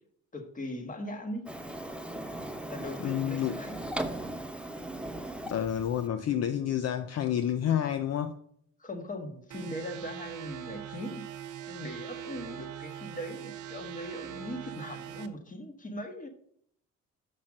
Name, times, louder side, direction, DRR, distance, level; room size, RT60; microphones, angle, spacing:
voice 1, 0.3-1.5 2.7-3.9 8.8-11.3 11.7-16.3, left 1 dB, 25° left, 1.5 m, -40 dB
Printer, 1.5-6.1, right 1 dB, 5° right, 0.8 m, -38 dB
voice 2, 3.0-3.6 5.5-8.3, left 10 dB, 55° left, 0.6 m, -29 dB
sound 1, 9.5-15.3, right 10 dB, 85° right, 0.8 m, -42 dB
6.1 x 5.6 x 6.3 m
cardioid pair, 90°, 30 cm